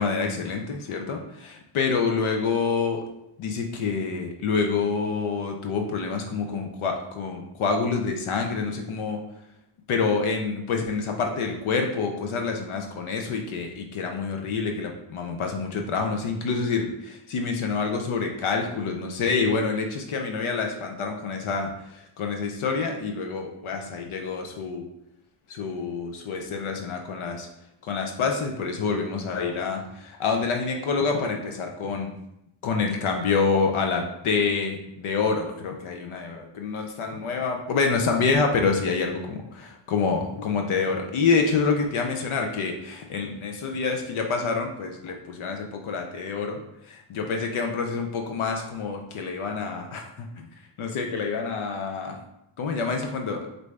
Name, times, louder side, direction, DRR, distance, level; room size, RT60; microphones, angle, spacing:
voice 1, 0.0-3.1 3.4-9.2 9.9-21.7 22.2-24.9 25.5-27.5 27.9-32.1 32.6-46.6 46.9-50.5 50.8-52.2 52.6-53.5, left 4 dB, 80° left, 3 dB, 0.7 m, -27 dB
4.5 x 2.7 x 3.2 m, 0.85 s
cardioid pair, 100°, 48 cm